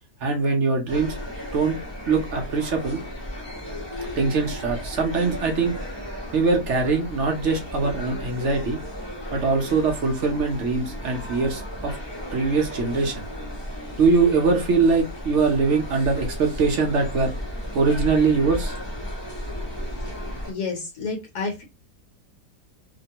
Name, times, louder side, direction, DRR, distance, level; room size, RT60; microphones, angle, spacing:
voice 1, 0.2-1.1 1.5-1.8 2.1-3.0 4.2-5.7 6.3-8.8 9.3-12.0 12.3-13.2 14.0-17.3 17.7-18.8, right 4 dB, 60° right, 2 dB, 0.7 m, -22 dB
sound 1, 0.9-20.5, equal, 30° left, 0.5 m, -34 dB
voice 2, 20.5-21.6, left 4 dB, 70° left, 2 dB, 1.2 m, -30 dB
2.9 x 2.0 x 2.7 m, 0.26 s
omnidirectional pair, 1.8 m